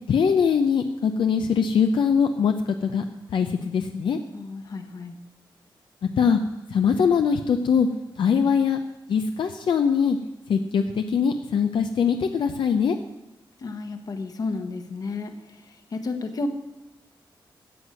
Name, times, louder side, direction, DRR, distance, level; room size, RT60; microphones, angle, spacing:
voice 1, 0.1-3.0 3.3-4.2 6.2-6.4 6.7-7.9 8.2-8.8 9.1-10.2 10.5-13.0, left 6 dB, 70° left, 6 dB, 0.6 m, -22 dB
voice 2, 4.3-5.2 13.6-16.5, left 3 dB, 50° left, 7 dB, 1.2 m, -32 dB
12.5 x 8.1 x 7.6 m, 0.97 s
wide cardioid pair, 175°, 9 cm